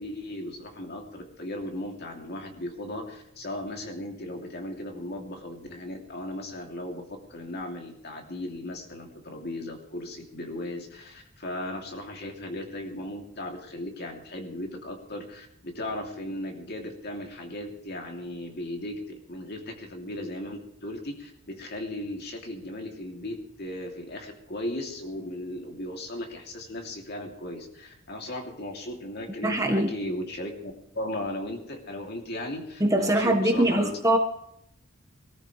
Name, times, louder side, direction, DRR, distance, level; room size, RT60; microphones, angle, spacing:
voice 1, 0.0-19.0 19.3-33.9, left 1 dB, 50° left, 2 dB, 2.9 m, -37 dB
voice 2, 29.4-29.9 32.8-34.2, right 1 dB, 15° right, 3 dB, 1.4 m, -22 dB
23.5 x 13.5 x 3.3 m, 0.77 s
head